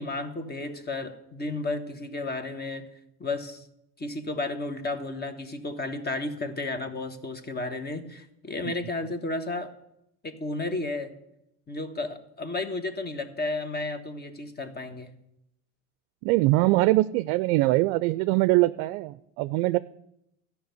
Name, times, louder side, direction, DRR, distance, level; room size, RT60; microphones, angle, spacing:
voice 1, 0.0-2.8 3.2-3.7 4.0-9.7 10.2-11.1 11.7-15.1, left 2 dB, 25° left, 10 dB, 1.5 m, -33 dB
voice 2, 16.2-19.8, right 19 dB, 60° right, 16 dB, 0.5 m, -23 dB
13.0 x 5.9 x 9.3 m, 0.81 s
hypercardioid pair, 95°, 41 cm